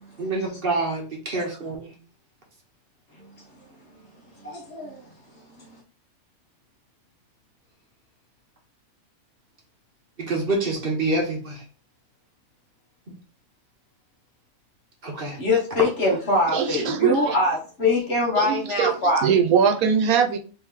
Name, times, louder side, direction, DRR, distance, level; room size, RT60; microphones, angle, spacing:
voice 1, 0.2-1.9 10.2-11.6 15.0-15.4, right 2 dB, 45° right, 1.1 m, -26 dB
voice 2, 4.4-5.0 5.6-5.7 15.4-19.2, left 2 dB, 50° left, 1.4 m, -23 dB
voice 3, 16.5-17.4 18.4-18.9 19.2-20.4, right 7 dB, 80° right, 1.2 m, -21 dB
3.4 x 3.1 x 3.6 m
omnidirectional pair, 1.5 m